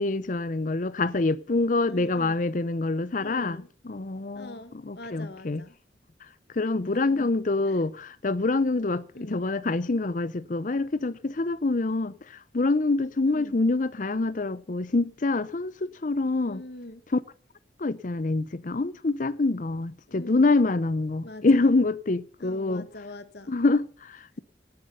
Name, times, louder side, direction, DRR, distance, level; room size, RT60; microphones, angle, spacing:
voice 1, 0.0-4.5 4.8-5.6 6.2-16.6 17.1-17.2 17.8-22.9 23.5-24.4, left 3 dB, 45° left, 0.6 m, -26 dB
voice 2, 1.9-2.4 3.2-3.7 4.3-5.8 6.8-7.3 7.6-7.8 9.1-9.5 13.2-13.6 16.3-17.0 20.1-20.6 21.2-21.7 22.4-23.6, left 1 dB, 65° left, 1.3 m, -43 dB
18.0 x 10.5 x 5.5 m
head